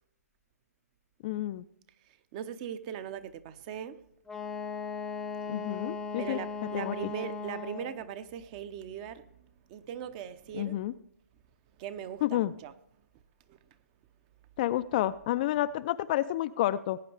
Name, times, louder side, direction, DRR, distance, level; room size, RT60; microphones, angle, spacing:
voice 1, 1.2-1.6 5.5-6.4 6.7-6.9 10.5-10.9 12.2-12.5 14.6-17.0, left 14 dB, 30° left, 0.4 m, -30 dB
voice 2, 2.0-4.1 5.6-5.8 6.2-10.8 11.8-12.7 13.5-13.8, right 9 dB, 30° right, 0.8 m, -40 dB
Wind instrument woodwind instrument, 4.3-8.0, left 4 dB, 5° left, 0.8 m, -37 dB
19.0 x 9.3 x 3.3 m
hypercardioid pair, 145°, 9 cm